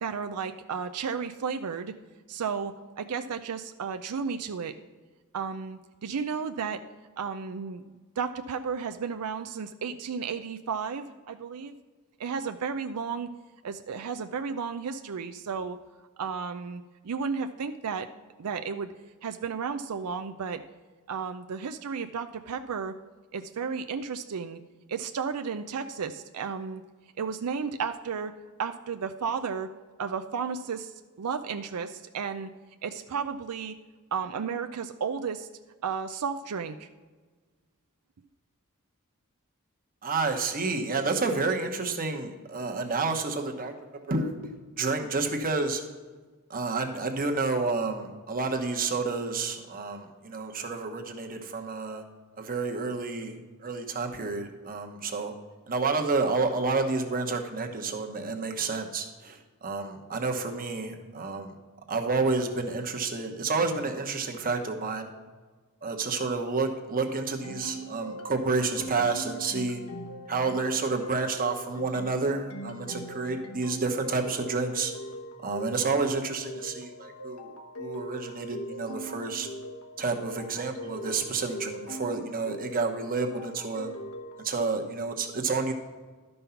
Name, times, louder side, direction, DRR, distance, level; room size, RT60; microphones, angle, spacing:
voice 1, 0.0-1.9 2.3-4.7 5.3-6.8 7.2-7.8 8.2-11.8 12.2-13.3 13.6-15.8 16.2-18.1 18.4-18.9 19.2-20.6 21.1-22.9 23.3-24.6 24.9-26.8 27.2-28.3 28.6-29.7 30.0-30.9 31.2-32.5 32.8-33.7 34.1-35.5 35.8-36.9, right 6 dB, 90° right, 7 dB, 0.5 m, -33 dB
voice 2, 40.0-43.7 44.1-44.3 44.8-45.8 46.5-52.0 52.4-55.3 55.7-61.5 61.9-65.1 65.8-69.8 70.3-74.9 75.4-79.5 80.0-83.9 84.4-85.7, right 4 dB, 40° right, 4 dB, 1.1 m, -30 dB
sound 1, 67.4-84.5, equal, 75° left, 1.1 m, -41 dB
12.0 x 5.4 x 5.7 m, 1.4 s
head